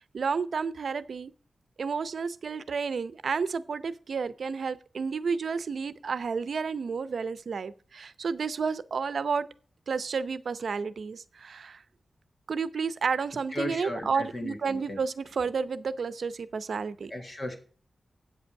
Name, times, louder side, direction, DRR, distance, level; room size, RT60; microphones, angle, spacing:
voice 1, 0.1-1.3 1.8-9.5 9.9-11.8 12.5-17.1, right 5 dB, 70° right, 15 dB, 0.7 m, -31 dB
voice 2, 13.5-15.0 17.1-17.6, left 1 dB, 35° left, 5 dB, 1.6 m, -35 dB
8.2 x 8.1 x 6.3 m, 0.43 s
wide cardioid pair, 155°, 0 cm